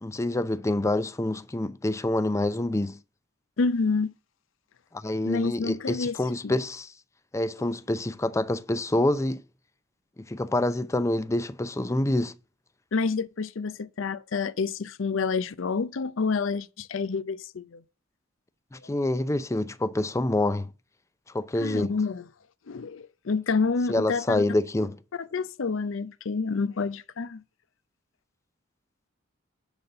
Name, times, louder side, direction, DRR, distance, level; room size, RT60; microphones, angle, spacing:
voice 1, 0.0-3.0 4.9-6.9 7.3-9.4 10.3-12.3 18.7-20.7 21.3-21.9 23.9-25.0, left 1 dB, 15° left, 0.5 m, -27 dB
voice 2, 3.6-4.1 5.2-6.1 6.4-6.5 12.9-17.8 21.6-22.2 22.7-24.4 25.2-27.4, left 4 dB, 70° left, 0.5 m, -28 dB
10.5 x 4.1 x 6.6 m
head